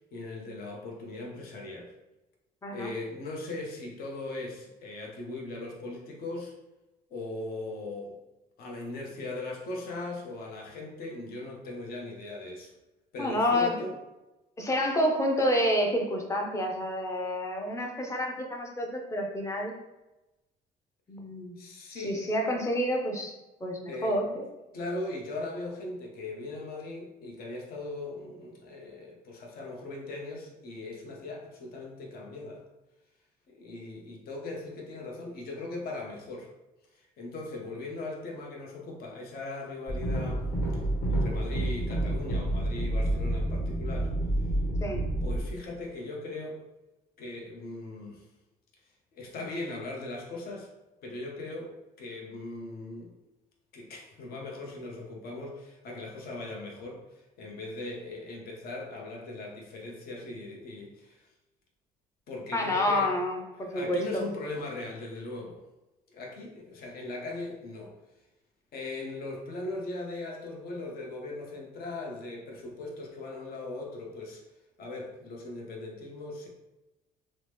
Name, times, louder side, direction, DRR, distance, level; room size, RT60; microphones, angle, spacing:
voice 1, 0.1-1.9 2.7-6.5 7.1-8.2 8.6-12.7 13.1-13.9 21.6-22.2 23.9-24.2 24.7-32.6 33.5-36.5 36.9-40.5 40.7-40.8 41.1-44.1 45.2-46.6 47.2-48.3 49.1-50.7 51.0-53.1 53.7-61.3 62.3-63.1 63.6-65.6 66.1-67.9 68.7-74.4 74.8-76.5, left 2 dB, 60° left, -1 dB, 0.8 m, -39 dB
voice 2, 13.2-13.7 14.6-19.7 21.1-21.6 21.9-23.3 23.6-24.4 44.8-45.0 62.5-64.2, left 1 dB, 15° left, 1 dB, 0.6 m, -29 dB
sound 1, 39.9-45.4, right 1 dB, 80° left, 1.2 m, -29 dB
2.9 x 2.0 x 3.3 m, 0.99 s
cardioid pair, 110°, 17 cm